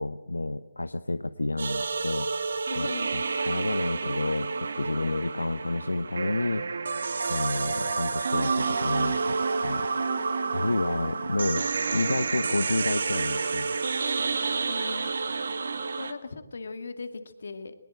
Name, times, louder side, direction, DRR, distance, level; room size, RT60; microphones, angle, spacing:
voice 1, 0.0-2.3 2.8-6.6 7.3-9.9 10.5-11.7 11.9-13.8, left 2 dB, 80° left, 13 dB, 0.8 m, -30 dB
sound 1, 1.6-16.1, right 4 dB, 60° right, 1.8 m, -29 dB
voice 2, 2.7-3.1 4.9-5.3 7.5-8.3 10.6-11.4 14.6-15.2 16.0-17.7, left 4 dB, 60° left, 10 dB, 2.1 m, -40 dB
21.0 x 20.5 x 7.8 m, 0.96 s
figure-of-eight pair, 145°, 0 cm